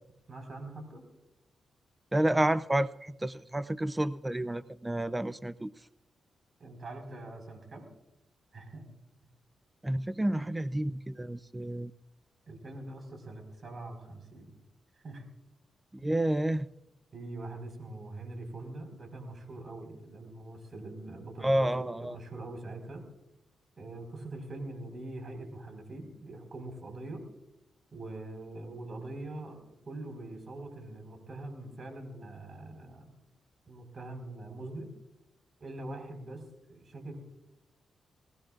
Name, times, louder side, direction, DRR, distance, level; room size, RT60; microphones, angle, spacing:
voice 1, 0.3-1.0 6.6-7.9 8.5-8.8 12.5-14.5 15.0-15.2 16.0-16.1 17.1-23.0 23.8-27.2 27.9-33.2 33.7-34.9 35.6-37.2, right 2 dB, 50° right, 4 dB, 4.9 m, -43 dB
voice 2, 2.1-5.7 9.8-11.9 15.9-16.7 21.4-22.2, right 1 dB, 15° right, 15 dB, 0.5 m, -30 dB
21.0 x 18.0 x 2.5 m, 0.88 s
cardioid pair, 60°, 0 cm